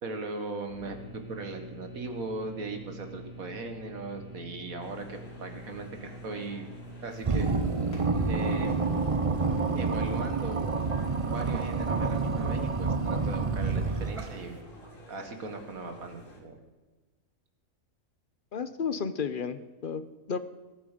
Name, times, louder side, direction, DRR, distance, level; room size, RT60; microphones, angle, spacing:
voice 1, 0.0-6.7 7.0-7.5 8.3-8.8 9.7-10.9 11.2-14.6 15.1-16.6, right 3 dB, 75° right, 6 dB, 2.1 m, -38 dB
sound 1, 0.7-9.6, equal, 85° left, 4.0 m, -47 dB
sound 2, 4.8-16.4, equal, 60° left, 3.9 m, -51 dB
sound 3, 7.2-14.5, right 4 dB, 35° right, 0.6 m, -28 dB
voice 2, 18.5-20.4, left 6 dB, 45° left, 12 dB, 0.7 m, -33 dB
21.0 x 9.0 x 5.1 m, 1.2 s
omnidirectional pair, 1.5 m